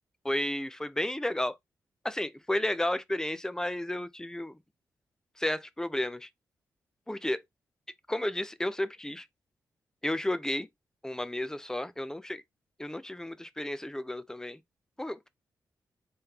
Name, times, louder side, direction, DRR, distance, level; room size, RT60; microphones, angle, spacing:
voice 1, 0.2-1.6 2.0-4.6 5.4-6.3 7.1-7.4 8.1-9.3 10.0-10.7 11.0-12.4 12.8-14.6 15.0-15.3, left 1 dB, 10° left, 0.5 m, -32 dB
3.7 x 3.3 x 2.8 m
cardioid pair, 65°, 7 cm